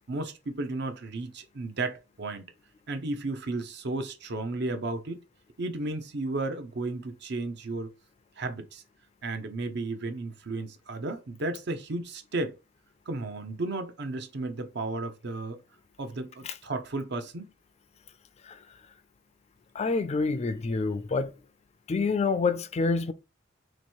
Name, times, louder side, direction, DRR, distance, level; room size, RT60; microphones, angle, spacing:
voice 1, 0.0-2.4 2.9-5.2 5.6-7.9 8.4-8.8 9.2-12.5 13.1-15.6 16.0-17.5, right 2 dB, 60° right, 0.7 m, -33 dB
voice 2, 19.7-21.3 21.9-23.1, left 4 dB, 35° left, 0.3 m, -27 dB
3.0 x 3.0 x 4.4 m
head